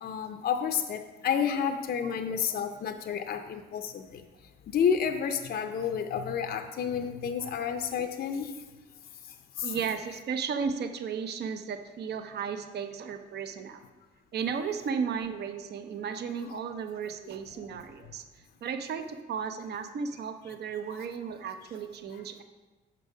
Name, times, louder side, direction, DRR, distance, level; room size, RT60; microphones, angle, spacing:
voice 1, 0.0-4.2 4.7-8.5 9.6-9.7 20.9-21.0, left 7 dB, 50° left, 6 dB, 0.5 m, -30 dB
voice 2, 9.6-13.8 14.3-22.4, right 6 dB, 55° right, 8 dB, 0.6 m, -34 dB
6.3 x 5.3 x 5.4 m, 1.3 s
cardioid pair, 90°, 20 cm